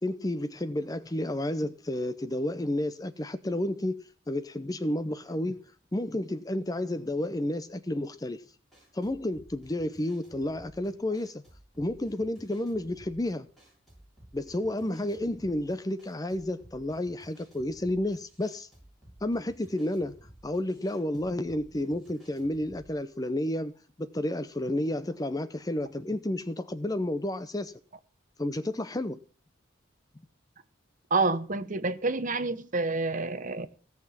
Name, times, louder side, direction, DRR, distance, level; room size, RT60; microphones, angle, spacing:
voice 1, 0.0-3.9 4.3-5.6 5.9-8.4 8.9-11.4 11.8-13.5 14.3-18.7 19.2-20.2 20.4-23.7 24.0-27.7 28.4-29.2, left 1 dB, 20° left, 0.6 m, -31 dB
sound 1, 8.7-23.0, right 1 dB, ahead, 7.1 m, -56 dB
voice 2, 31.1-33.7, right 3 dB, 40° right, 0.9 m, -28 dB
16.5 x 5.9 x 7.3 m
head